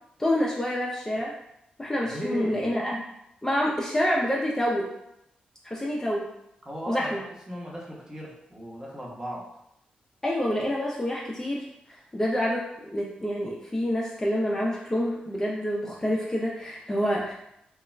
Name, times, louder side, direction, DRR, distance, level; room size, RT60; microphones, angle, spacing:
voice 1, 0.2-1.3 1.8-3.0 3.4-4.9 5.6-6.3 6.9-7.2 10.2-17.3, equal, 15° left, -4 dB, 0.4 m, -27 dB
voice 2, 2.0-2.6 6.6-7.2 7.5-9.5, equal, 20° right, -4 dB, 0.8 m, -36 dB
2.3 x 2.1 x 3.1 m, 0.80 s
cardioid pair, 60°, 3 cm